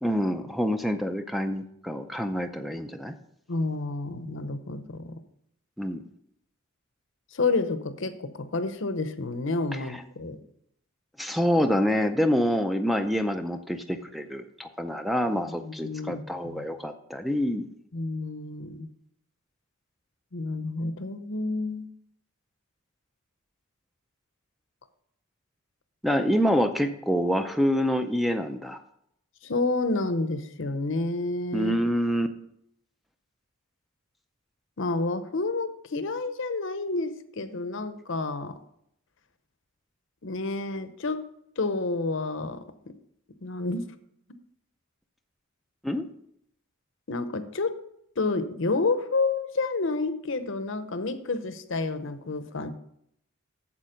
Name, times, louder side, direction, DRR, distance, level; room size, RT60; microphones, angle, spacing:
voice 1, 0.0-3.1 5.8-6.0 9.7-9.8 11.2-17.7 26.0-28.8 31.5-32.3 45.8-46.0, equal, ahead, 7 dB, 0.4 m, -26 dB
voice 2, 3.5-5.2 7.3-10.4 15.4-16.7 17.9-18.9 20.3-21.9 29.4-31.7 34.8-38.6 40.2-41.2 41.6-42.9 43.4-43.8 47.1-47.7 48.2-52.7, left 3 dB, 60° left, 11 dB, 0.8 m, -29 dB
8.7 x 7.3 x 5.1 m, 0.73 s
head